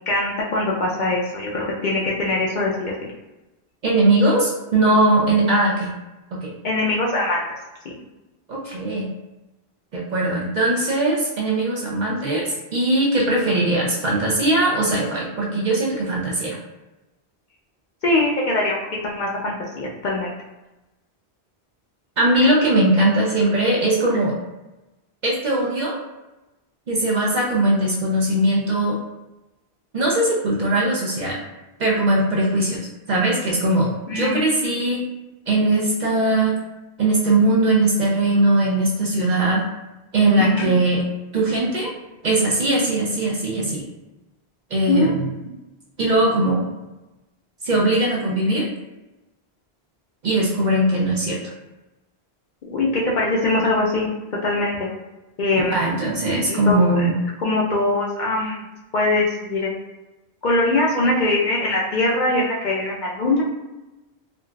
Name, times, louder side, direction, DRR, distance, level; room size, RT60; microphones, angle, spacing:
voice 1, 0.1-3.1 6.6-7.4 7.8-7.9 18.0-18.8 19.0-20.3 34.1-34.4 40.4-40.7 44.9-45.1 52.7-54.1 54.4-54.9 55.4-55.7 56.5-57.0 57.4-58.6 58.9-59.7 60.4-63.4, left 2 dB, 55° left, -3 dB, 0.6 m, -22 dB
voice 2, 3.8-5.9 6.3-6.5 8.5-9.1 9.9-16.6 22.2-24.3 25.2-26.0 26.9-29.0 29.9-31.4 31.8-35.1 35.5-36.6 37.0-39.6 40.1-41.0 41.3-41.9 42.2-43.9 44.7-45.3 46.0-46.7 47.6-48.7 50.2-51.5 55.7-57.1, right 2 dB, 55° right, -4 dB, 0.6 m, -20 dB
3.8 x 2.3 x 2.2 m, 1.0 s
omnidirectional pair, 1.1 m